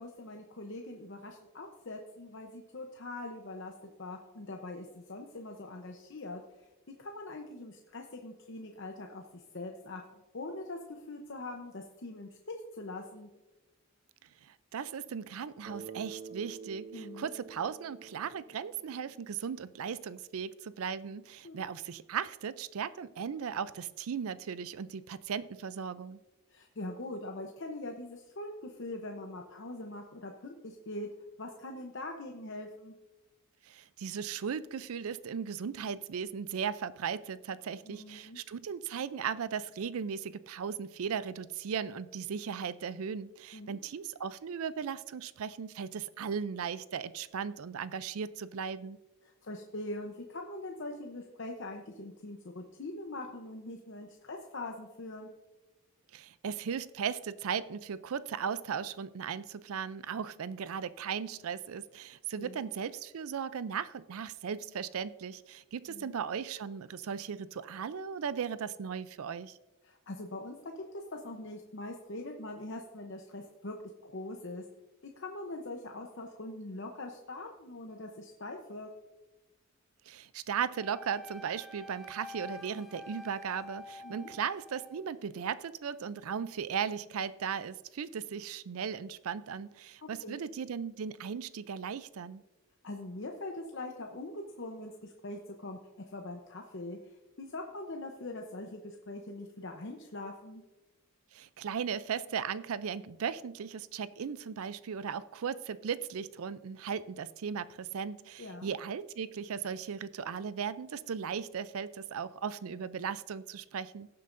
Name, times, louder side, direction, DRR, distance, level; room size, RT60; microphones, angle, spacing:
voice 1, 0.0-3.7 4.0-6.4 7.0-10.0 10.3-13.3 16.9-17.3 21.4-21.6 26.5-31.1 31.4-32.9 37.8-38.4 43.5-43.8 49.4-55.3 62.4-62.7 65.9-66.1 69.8-73.8 74.0-74.6 75.2-78.9 84.0-84.3 90.2-90.4 92.8-97.0 97.4-100.6 108.4-108.7, left 2 dB, 55° left, 2 dB, 0.8 m, -42 dB
voice 2, 14.4-26.2 33.7-49.0 56.1-69.6 80.1-92.4 101.3-114.1, right 7 dB, 75° right, 16 dB, 0.4 m, -37 dB
Bass guitar, 15.6-19.6, right 5 dB, 45° right, 1.6 m, -48 dB
Wind instrument woodwind instrument, 80.7-85.0, left 1 dB, ahead, 0.8 m, -48 dB
18.5 x 7.5 x 2.6 m, 1.1 s
head